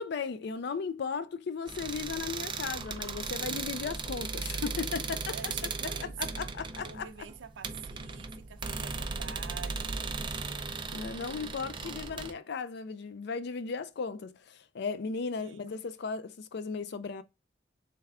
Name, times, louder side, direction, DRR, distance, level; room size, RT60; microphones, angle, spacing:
voice 1, 0.0-5.5 6.0-7.1 10.9-17.2, left 5 dB, 60° left, 0.4 m, -36 dB
sound 1, 1.7-12.3, right 4 dB, 25° right, 0.4 m, -37 dB
voice 2, 5.3-6.4 6.8-10.1 15.4-15.7, right 7 dB, 75° right, 0.5 m, -47 dB
3.4 x 3.3 x 3.5 m
head